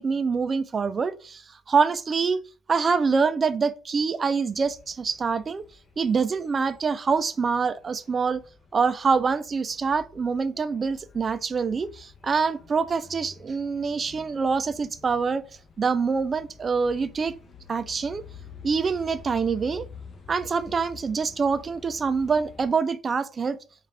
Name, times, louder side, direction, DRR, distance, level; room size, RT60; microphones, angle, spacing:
voice 1, 0.0-2.4 2.7-5.6 6.0-8.4 8.7-15.4 15.8-17.3 17.7-18.2 18.6-19.9 20.3-23.6, right 5 dB, 35° right, 0.4 m, -25 dB
sound 1, 4.5-22.7, left 6 dB, 40° left, 0.9 m, -49 dB
4.7 x 2.4 x 3.3 m
supercardioid pair, 80°, 0 cm